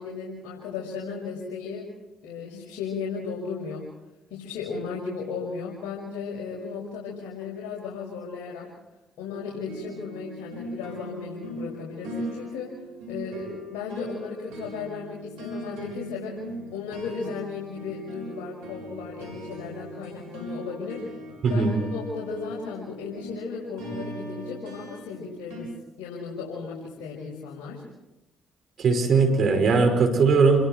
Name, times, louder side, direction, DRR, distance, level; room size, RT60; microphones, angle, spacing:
voice 1, 0.0-1.9 2.2-3.8 4.3-8.7 9.2-12.7 13.1-16.4 16.7-21.0 21.5-25.7 26.0-27.8, left 5 dB, 75° left, -4 dB, 6.1 m, -35 dB
sound 1, 9.7-25.6, right 1 dB, 85° right, 6.8 m, -39 dB
voice 2, 21.4-21.7 28.8-30.7, right 4 dB, 60° right, 6 dB, 5.6 m, -20 dB
28.5 x 22.5 x 4.6 m, 0.95 s
hypercardioid pair, 50°, 0 cm